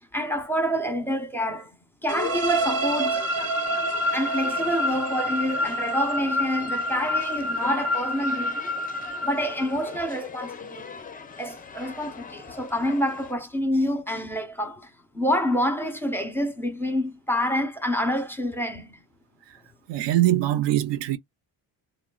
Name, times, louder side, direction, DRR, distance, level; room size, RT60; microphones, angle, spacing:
voice 1, 0.1-1.7 2.0-3.3 4.1-8.7 9.2-10.9 11.4-14.9 15.1-18.9, equal, 5° left, 0.8 m, -27 dB
sound 1, 2.1-13.3, left 5 dB, 20° left, 0.4 m, -41 dB
sound 2, 2.1-9.9, equal, 35° right, 0.7 m, -28 dB
voice 2, 19.9-21.2, right 14 dB, 75° right, 0.6 m, -23 dB
3.4 x 2.1 x 2.3 m
cardioid pair, 105°, 43 cm